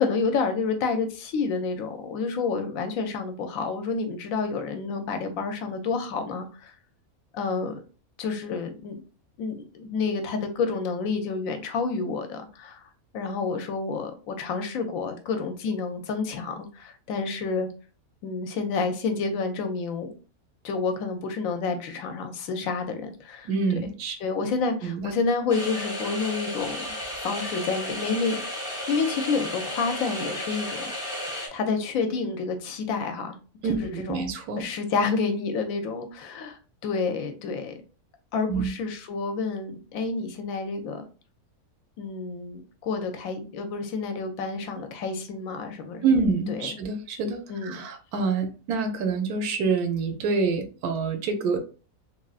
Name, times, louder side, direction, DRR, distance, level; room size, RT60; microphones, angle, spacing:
voice 1, 0.0-6.7 7.3-7.8 8.2-9.0 9.4-12.8 13.1-17.7 18.2-20.1 20.6-23.5 24.2-26.8 27.1-28.4 28.6-30.9 31.5-33.4 33.6-34.2 34.6-37.7 38.3-41.0 42.0-46.1 46.5-46.7 47.5-47.7, left 4 dB, 70° left, 0.9 m, -29 dB
voice 2, 23.4-24.2 24.8-25.1 33.6-34.6 38.5-38.7 46.0-51.6, right 4 dB, 90° right, 1.1 m, -26 dB
sound 1, 25.5-31.5, left 1 dB, 5° right, 0.6 m, -33 dB
3.3 x 2.4 x 2.3 m
omnidirectional pair, 1.6 m